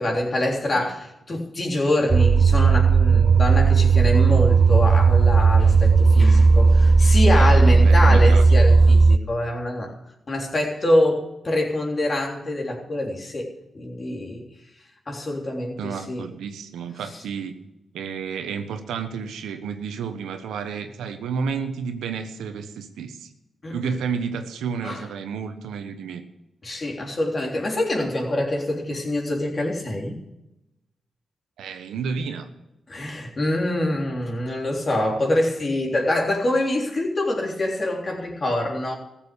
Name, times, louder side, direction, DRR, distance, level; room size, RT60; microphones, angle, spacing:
voice 1, 0.0-10.0 10.3-14.4 15.1-16.2 17.1-17.2 23.6-24.0 24.8-25.0 26.6-30.2 32.9-39.0, left 1 dB, 45° left, 0 dB, 3.5 m, -25 dB
sound 1, 2.1-9.2, right 4 dB, 45° right, 0.5 m, -15 dB
voice 2, 7.3-8.4 15.8-17.5 17.9-23.3 23.7-26.2 31.6-32.5, right 6 dB, 90° right, 8 dB, 1.1 m, -31 dB
15.0 x 7.5 x 8.4 m, 0.91 s
cardioid pair, 55°, 0 cm